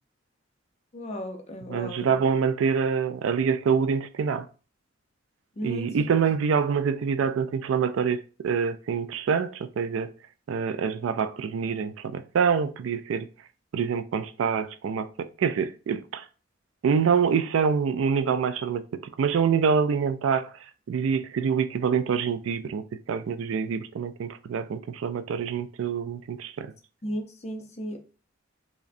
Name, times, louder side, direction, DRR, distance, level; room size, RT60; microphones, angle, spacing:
voice 1, 0.9-2.2 5.6-6.0 27.0-28.0, equal, 35° left, 0.6 m, -35 dB
voice 2, 1.7-4.5 5.6-10.1 10.5-13.3 13.7-16.2 16.8-20.5 20.9-26.7, right 6 dB, 85° right, 0.3 m, -26 dB
4.8 x 2.1 x 2.6 m
head